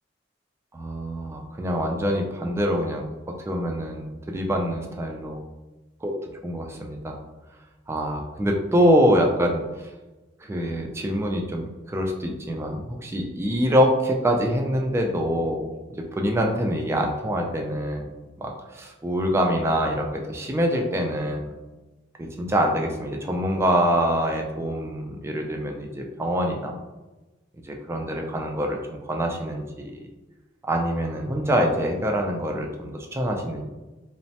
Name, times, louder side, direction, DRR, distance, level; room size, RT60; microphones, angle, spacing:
voice 1, 0.7-5.4 6.0-6.1 6.4-7.2 7.9-9.6 10.5-15.7 16.2-18.1 18.4-21.5 22.4-26.7 27.7-30.0 30.6-33.7, equal, 15° right, 1 dB, 0.3 m, -25 dB
3.0 x 2.0 x 2.7 m, 1.1 s
head